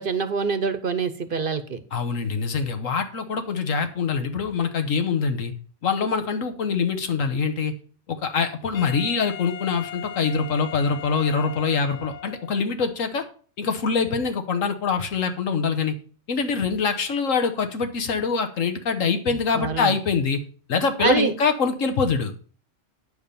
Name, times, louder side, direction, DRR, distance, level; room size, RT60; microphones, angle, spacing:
voice 1, 0.0-1.8 19.6-19.9 21.0-21.3, right 5 dB, 50° right, 11 dB, 0.8 m, -25 dB
voice 2, 1.9-5.5 5.8-7.7 8.1-13.2 13.6-15.9 16.3-20.4 20.7-22.3, left 5 dB, 85° left, 7 dB, 1.6 m, -24 dB
Wind instrument woodwind instrument, 8.7-12.7, left 10 dB, 70° left, 0.9 m, -38 dB
9.6 x 4.8 x 6.9 m, 0.42 s
omnidirectional pair, 1.3 m